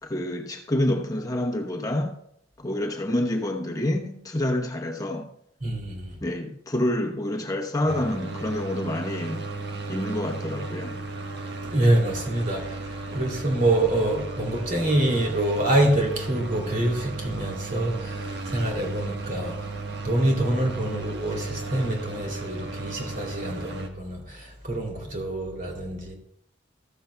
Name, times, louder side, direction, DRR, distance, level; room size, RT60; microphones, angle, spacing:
voice 1, 0.0-2.2 2.6-5.3 6.2-9.4 9.9-11.0, left 1 dB, 20° left, 0.9 m, -27 dB
voice 2, 5.6-6.2 11.6-19.7 20.0-26.1, right 1 dB, 50° right, 2.9 m, -26 dB
sound 1, 7.9-23.9, right 3 dB, 65° right, 1.4 m, -35 dB
14.0 x 13.5 x 2.3 m
head